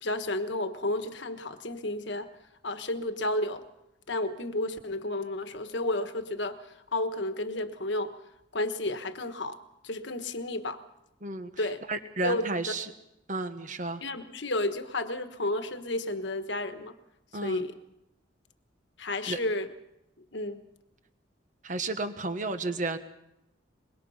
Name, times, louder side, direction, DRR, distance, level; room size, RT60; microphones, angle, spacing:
voice 1, 0.0-2.3 2.6-3.6 4.1-6.6 6.9-8.1 8.5-9.6 9.8-10.8 11.6-11.8 12.2-12.5 14.0-17.0 17.4-17.8 19.0-19.7 20.3-20.6, left 2 dB, 65° left, 9 dB, 1.3 m, -31 dB
voice 2, 11.9-12.9 13.3-14.0 17.3-17.6 19.3-19.4 21.6-23.0, right 2 dB, 40° right, 9 dB, 1.4 m, -32 dB
23.5 x 22.0 x 5.7 m, 0.86 s
head